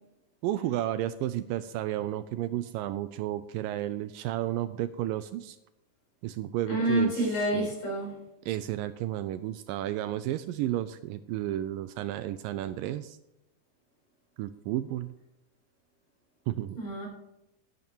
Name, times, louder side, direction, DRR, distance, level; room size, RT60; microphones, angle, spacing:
voice 1, 0.4-5.6 6.2-7.2 7.5-7.7 8.5-13.2 14.4-15.1 16.5-16.8, right 13 dB, 80° right, 12 dB, 2.1 m, -32 dB
voice 2, 6.7-8.2 16.8-17.1, right 1 dB, 65° left, -1 dB, 6.2 m, -28 dB
11.0 x 11.0 x 4.4 m, 0.89 s
omnidirectional pair, 4.3 m